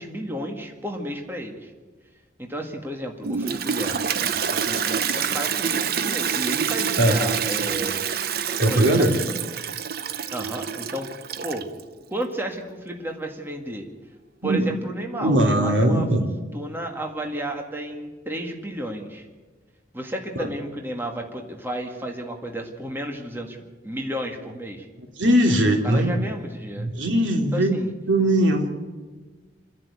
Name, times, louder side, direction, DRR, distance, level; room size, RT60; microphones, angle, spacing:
voice 1, 0.0-1.7 2.4-3.9 4.5-8.0 8.7-9.4 10.3-11.1 11.4-11.7 12.1-13.8 14.4-16.3 16.5-19.3 19.9-23.6 23.8-24.9 25.7-26.9 27.5-27.9, right 1 dB, 10° right, 2 dB, 2.0 m, -32 dB
Toilet flush, 3.2-11.8, right 7 dB, 50° right, 0.7 m, -27 dB
voice 2, 8.6-9.1 14.4-14.7 15.1-16.3 25.2-26.2 26.8-27.8 28.1-28.7, right 1 dB, 75° right, 3 dB, 2.9 m, -20 dB
29.0 x 11.0 x 8.5 m, 1.3 s
head